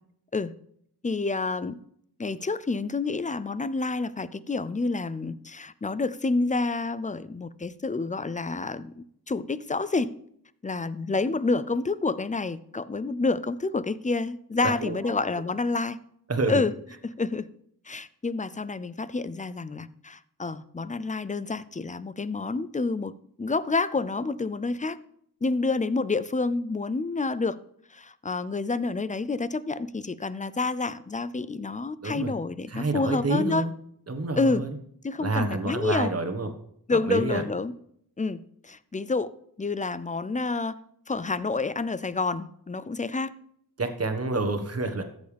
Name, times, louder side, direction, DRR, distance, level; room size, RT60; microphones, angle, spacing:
voice 1, 1.0-1.8 2.2-10.1 10.6-16.0 16.5-16.7 17.0-17.5 17.9-23.1 23.4-25.0 25.4-27.6 27.9-33.6 34.4-34.7 35.0-36.1 36.9-37.7 38.2-38.4 38.6-39.3 39.6-40.8 41.1-43.3, left 3 dB, 20° left, 16 dB, 0.5 m, -28 dB
voice 2, 14.6-15.0 16.3-16.6 32.0-32.3 32.7-33.7 34.1-34.7 35.2-36.5 36.9-37.4 43.8-45.0, right 3 dB, 40° right, 6 dB, 1.4 m, -28 dB
14.0 x 7.9 x 3.4 m, 0.70 s
wide cardioid pair, 85°, 39 cm